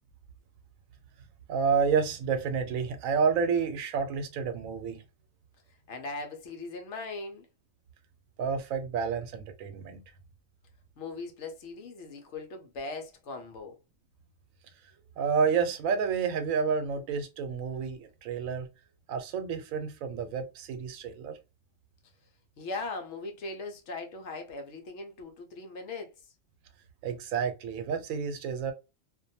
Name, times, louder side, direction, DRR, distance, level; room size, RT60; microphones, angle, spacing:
voice 1, 1.5-5.0 8.4-10.0 15.2-18.7 19.1-21.4 27.0-28.7, right 6 dB, 90° right, 1.0 m, -29 dB
voice 2, 5.9-7.5 11.0-13.8 22.6-26.1, left 3 dB, 65° left, 0.9 m, -39 dB
2.5 x 2.2 x 2.6 m
omnidirectional pair, 1.4 m